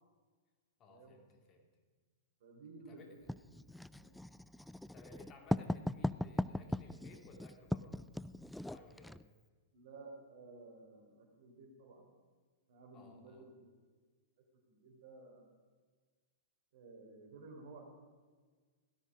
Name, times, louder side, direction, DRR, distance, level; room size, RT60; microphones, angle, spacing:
voice 1, 0.8-1.7 2.8-3.3 4.9-8.0 8.6-9.2 12.9-13.5, left 2 dB, 30° left, 3 dB, 2.8 m, -59 dB
voice 2, 2.4-3.4 4.0-4.1 9.7-12.1 12.7-13.9 14.7-15.6 16.7-17.9, right 3 dB, 55° right, 2 dB, 4.1 m, -55 dB
Writing, 3.3-9.2, left 1 dB, 5° left, 0.3 m, -39 dB
17.5 x 12.5 x 5.0 m, 1.5 s
figure-of-eight pair, 105°, 0 cm